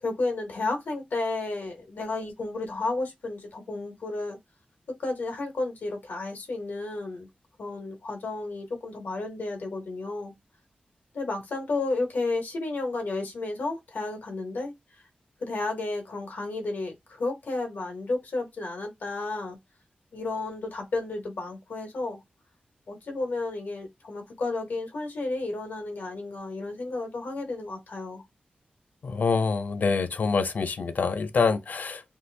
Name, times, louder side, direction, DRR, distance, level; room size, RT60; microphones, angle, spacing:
voice 1, 0.0-4.4 4.9-7.3 7.6-10.3 11.1-14.7 15.4-19.6 20.1-22.2 22.9-28.2, left 2 dB, 85° left, 1.0 m, -32 dB
voice 2, 29.0-32.0, left 4 dB, 65° left, 0.4 m, -26 dB
2.7 x 2.5 x 3.3 m
wide cardioid pair, 95°, 3 cm